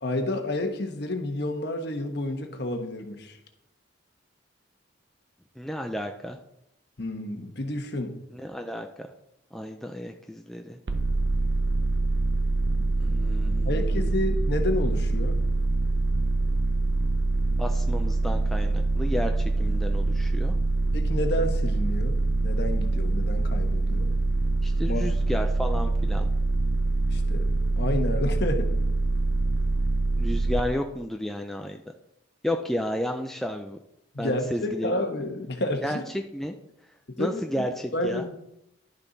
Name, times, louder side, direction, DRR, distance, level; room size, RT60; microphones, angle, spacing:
voice 1, 0.0-3.4 7.0-8.1 13.6-15.3 20.9-24.1 24.9-25.1 27.1-27.5 27.8-28.7 34.1-36.0 37.1-37.6 37.9-38.5, left 1 dB, 55° left, 4 dB, 1.3 m, -30 dB
voice 2, 5.6-6.4 8.3-9.1 9.5-10.8 13.0-14.1 17.6-20.6 24.6-26.3 30.2-31.8 32.4-33.8 34.2-34.9 35.8-36.6 37.2-38.2, equal, ahead, 3 dB, 0.4 m, -32 dB
sound 1, 10.9-30.6, right 2 dB, 60° right, 0.8 m, -25 dB
11.5 x 6.9 x 4.1 m, 0.79 s
head